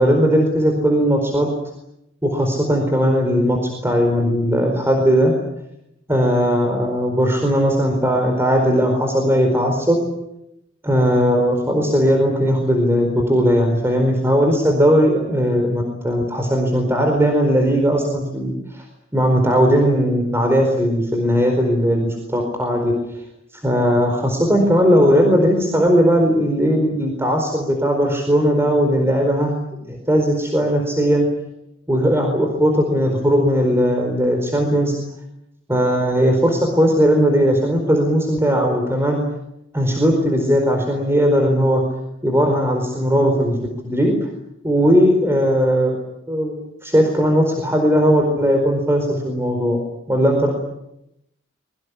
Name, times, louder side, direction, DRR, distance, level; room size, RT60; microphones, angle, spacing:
voice 1, 0.0-1.5 2.2-5.3 6.1-10.0 10.8-18.8 19.1-22.9 23.6-31.3 31.9-34.9 35.7-39.2 39.7-41.8 42.2-43.6 43.8-44.1 44.6-46.0 46.3-46.6 46.8-49.8 50.1-50.5, equal, 15° right, 2 dB, 4.5 m, -18 dB
25.0 x 23.0 x 8.4 m, 0.84 s
head